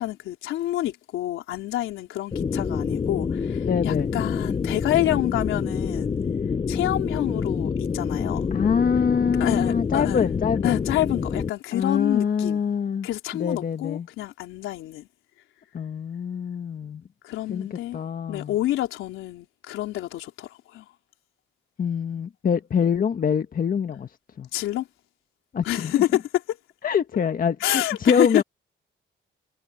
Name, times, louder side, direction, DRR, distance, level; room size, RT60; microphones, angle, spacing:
voice 1, 0.0-6.1 6.7-8.5 9.4-10.3 10.6-12.6 13.0-15.1 17.2-18.0 18.3-20.9 24.5-24.9 25.6-26.2 26.5-26.6 27.6-28.4, left 14 dB, 90° left, 4.0 m, -28 dB
sound 1, 2.3-11.5, left 5 dB, 25° left, 0.5 m, -27 dB
voice 2, 3.7-4.1 8.5-10.9 11.7-13.1 13.3-14.1 15.7-17.0 17.5-18.5 21.8-24.1 24.4-24.5 25.5-26.0 26.8-28.4, left 7 dB, 45° left, 1.5 m, -25 dB
cardioid pair, 90°, 20 cm